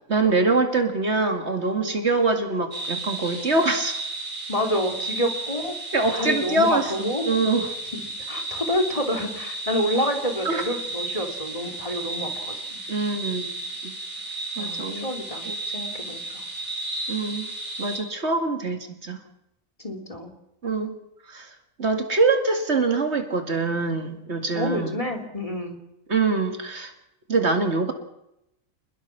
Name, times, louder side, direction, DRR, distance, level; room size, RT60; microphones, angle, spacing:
voice 1, 0.1-4.0 5.9-7.7 10.4-10.6 12.9-13.5 13.8-13.9 14.6-15.1 15.4-15.5 17.1-17.5 17.8-19.2 20.6-21.0 21.3-21.5 21.8-25.0 26.1-26.9 27.3-27.9, right 3 dB, 60° right, 5 dB, 2.5 m, -24 dB
sound 1, 2.7-18.0, right 2 dB, 35° right, 7.1 m, -33 dB
voice 2, 4.5-5.7 6.1-7.3 7.9-8.0 8.3-12.8 14.6-15.5 15.7-16.4 19.8-20.3 24.5-25.8, equal, 25° left, 5 dB, 3.0 m, -28 dB
28.0 x 20.5 x 5.9 m, 0.85 s
omnidirectional pair, 1.3 m